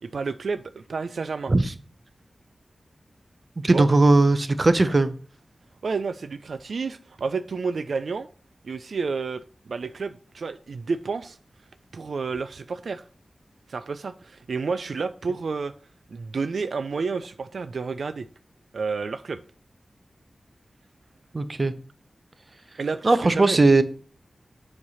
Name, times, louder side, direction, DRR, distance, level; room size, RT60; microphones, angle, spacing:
voice 1, 0.0-1.5 3.7-3.9 5.8-8.3 8.6-11.4 11.9-13.0 13.7-15.7 16.1-18.3 18.7-19.4 22.8-23.6, right 4 dB, 80° right, 0.4 m, -30 dB
voice 2, 3.6-5.1 21.3-21.7 23.0-23.8, right 2 dB, 40° right, 0.7 m, -18 dB
7.3 x 3.2 x 5.5 m
wide cardioid pair, 65°, 0 cm